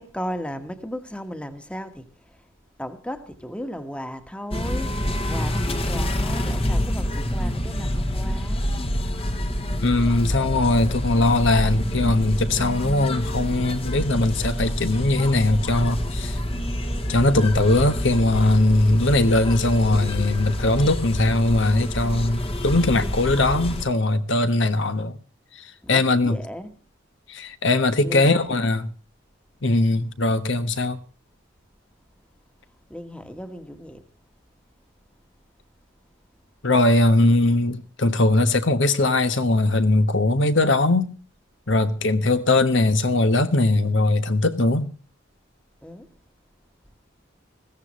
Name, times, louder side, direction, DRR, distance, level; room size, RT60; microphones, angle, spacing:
voice 1, 0.0-2.4 2.8-4.9 5.3-8.7 25.8-26.7 28.0-28.4 32.9-34.0 45.8-46.1, equal, 5° left, 1.4 m, -35 dB
sound 1, 4.5-23.8, left 1 dB, 30° left, 1.2 m, -27 dB
voice 2, 9.8-16.4 17.1-25.2 25.6-26.4 27.3-28.9 29.6-31.0 36.6-41.1 41.7-44.9, left 2 dB, 70° left, 1.3 m, -20 dB
20.5 x 15.0 x 3.1 m
head